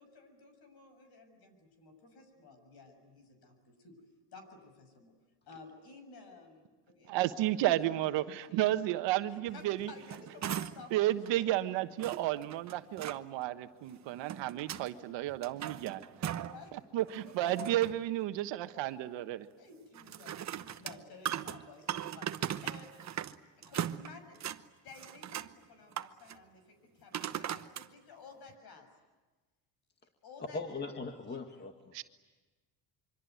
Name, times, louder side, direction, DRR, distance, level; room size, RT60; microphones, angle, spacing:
voice 1, 0.0-4.0 4.3-5.1 5.5-8.7 9.3-11.5 16.5-16.7 17.1-17.6 19.6-24.4 24.8-28.9 30.2-30.6, left 4 dB, 60° left, 8 dB, 6.8 m, -54 dB
voice 2, 7.1-9.9 10.9-16.0 16.9-19.5 31.9-32.0, right 14 dB, 75° right, 9 dB, 1.4 m, -32 dB
sound 1, 9.8-10.9 11.3-11.4 12.0-13.2 14.0-14.9 15.3-16.6 17.0-18.0 19.9-23.4 23.6-24.6 24.9-25.5 25.9-26.4 27.1-27.9 28.5-28.6, right 10 dB, 40° right, 1.0 m, -39 dB
voice 3, 30.5-31.9, left 3 dB, 25° left, 5 dB, 2.0 m, -40 dB
26.0 x 24.5 x 9.4 m, 1.2 s
cardioid pair, 115°, 44 cm